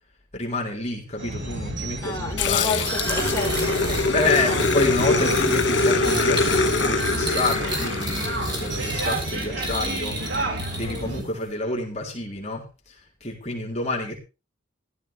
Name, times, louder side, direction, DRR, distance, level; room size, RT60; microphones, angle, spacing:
voice 1, 0.3-2.9 4.1-10.2 10.6-14.2, left 2 dB, 35° left, 3.9 m, -28 dB
sound 1, 1.2-11.2, right 2 dB, 65° right, 5.6 m, -31 dB
voice 2, 2.0-4.8, left 3 dB, 15° left, 4.3 m, -31 dB
Growling, 2.4-9.1, left 3 dB, 65° left, 1.9 m, -24 dB
sound 2, 2.7-11.2, right 1 dB, 25° right, 5.3 m, -33 dB
15.5 x 13.0 x 3.6 m
head